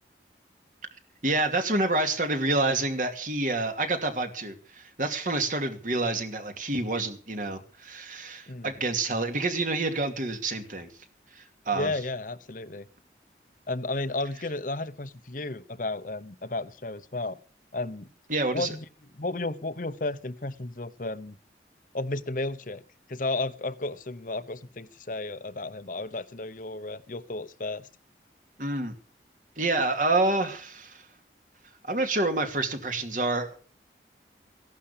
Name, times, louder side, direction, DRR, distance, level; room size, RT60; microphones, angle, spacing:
voice 1, 1.2-10.9 11.3-11.9 18.3-18.7 28.6-28.9 29.6-31.0 31.8-33.6, right 2 dB, 45° right, 6 dB, 2.5 m, -28 dB
voice 2, 11.7-12.9 13.7-17.4 17.7-18.1 18.5-18.8 19.2-21.3 21.9-22.8 23.1-27.9, left 2 dB, 50° left, 14 dB, 1.0 m, -33 dB
15.5 x 11.5 x 6.9 m, 0.41 s
head